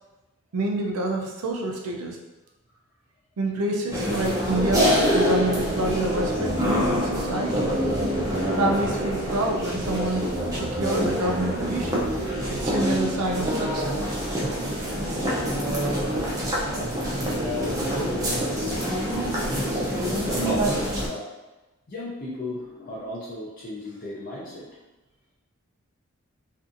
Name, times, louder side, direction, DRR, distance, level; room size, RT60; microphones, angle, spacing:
voice 1, 0.5-2.2 3.4-7.7 8.6-10.2 10.5-12.1 12.5-14.0, right 2 dB, 85° right, 0 dB, 0.5 m, -27 dB
sound 1, 3.9-21.1, equal, 15° right, 0.4 m, -25 dB
voice 2, 14.4-14.7 17.9-21.3 21.9-24.8, left 1 dB, 40° left, -6 dB, 0.5 m, -37 dB
2.6 x 2.4 x 2.5 m, 1.1 s
head